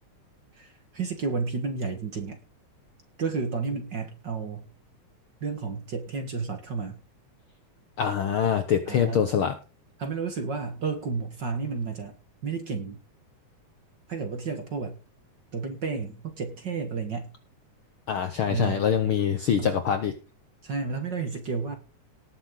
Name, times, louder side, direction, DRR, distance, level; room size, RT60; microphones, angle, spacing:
voice 1, 0.5-2.4 3.2-4.7 5.4-7.0 8.9-9.4 10.0-12.1 12.4-13.0 14.1-14.9 15.5-17.3 18.5-19.2 19.6-19.8 20.6-21.8, right 5 dB, 45° right, 6 dB, 1.7 m, -32 dB
voice 2, 8.0-9.5 18.1-20.1, left 8 dB, 65° left, 8 dB, 1.4 m, -24 dB
19.0 x 6.9 x 3.8 m, 0.33 s
omnidirectional pair, 3.5 m